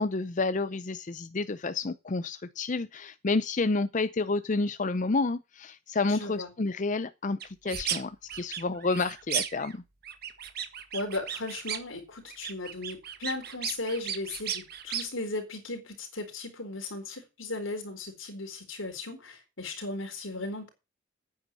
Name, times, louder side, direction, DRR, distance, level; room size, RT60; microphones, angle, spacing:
voice 1, 0.0-9.8, left 3 dB, 40° left, 0.5 m, -30 dB
voice 2, 6.1-6.5 10.9-20.7, left 2 dB, 80° left, 4.1 m, -36 dB
sound 1, 7.4-8.0 8.3-9.7 10.0-11.9 12.3-15.0, right 9 dB, 50° right, 1.5 m, -35 dB
9.5 x 9.0 x 6.3 m
head